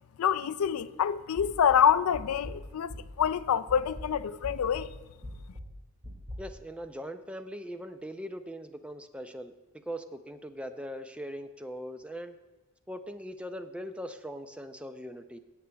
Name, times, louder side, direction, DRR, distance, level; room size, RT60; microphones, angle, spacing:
voice 1, 0.2-2.9 3.2-4.9, left 8 dB, 75° left, 0.4 m, -26 dB
sound 1, 1.4-3.4 3.7-6.4, equal, 25° right, 2.0 m, -42 dB
voice 2, 6.4-9.5 9.9-12.3 12.9-15.4, equal, 5° right, 0.4 m, -40 dB
16.0 x 8.7 x 2.3 m
head